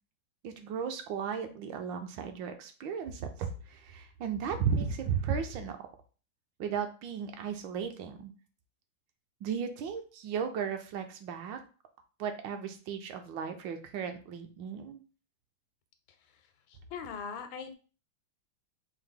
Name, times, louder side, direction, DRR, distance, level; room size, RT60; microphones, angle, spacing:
voice 1, 0.4-5.8 6.6-8.3 9.4-11.6 12.2-15.0, right 6 dB, 75° right, 6 dB, 1.3 m, -35 dB
voice 2, 16.2-17.7, left 6 dB, 85° left, 8 dB, 1.4 m, -42 dB
4.6 x 2.0 x 3.6 m, 0.37 s
omnidirectional pair, 2.1 m